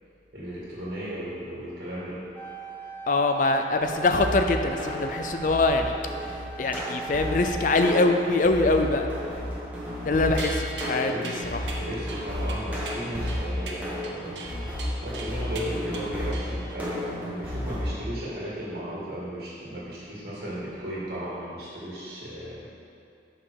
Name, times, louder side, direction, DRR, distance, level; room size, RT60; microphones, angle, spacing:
voice 1, 0.3-2.2 11.0-11.4 11.8-14.7 15.0-22.7, equal, 60° right, -8 dB, 1.8 m, -36 dB
sound 1, 2.3-7.8, right 6 dB, 10° left, 0.7 m, -40 dB
voice 2, 3.1-5.9 6.2-6.3 6.6-9.1 10.0-11.6, left 2 dB, 45° left, 5 dB, 0.4 m, -23 dB
sound 2, 3.9-17.9, left 1 dB, 10° right, 1.2 m, -33 dB
sound 3, 10.4-16.9, right 3 dB, 85° right, 0.9 m, -40 dB
5.6 x 5.2 x 6.4 m, 2.6 s
head